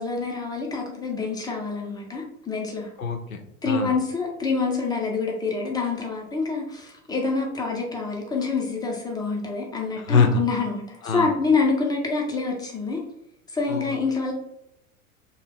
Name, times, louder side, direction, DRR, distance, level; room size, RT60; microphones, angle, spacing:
voice 1, 0.0-2.9 3.6-13.0 13.5-14.3, left 4 dB, 10° left, -1 dB, 0.6 m, -26 dB
voice 2, 3.0-3.9 10.1-10.3 11.0-11.3 13.7-13.9, left 6 dB, 80° left, 6 dB, 0.6 m, -24 dB
2.8 x 2.2 x 3.3 m, 0.80 s
figure-of-eight pair, 80°, 41 cm